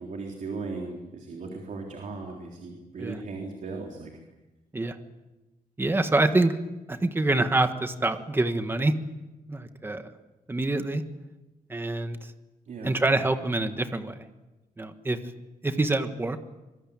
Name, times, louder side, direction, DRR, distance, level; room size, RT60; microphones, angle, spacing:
voice 1, 0.0-4.1 12.7-12.9, right 3 dB, 55° right, 1 dB, 3.7 m, -37 dB
voice 2, 5.8-6.5 6.9-8.9 9.5-10.1 10.5-11.0 11.7-12.3 12.8-14.2 14.8-15.2 15.6-16.4, right 2 dB, 15° right, 8 dB, 1.5 m, -26 dB
25.0 x 22.5 x 8.8 m, 1.1 s
wide cardioid pair, 170°, 15 cm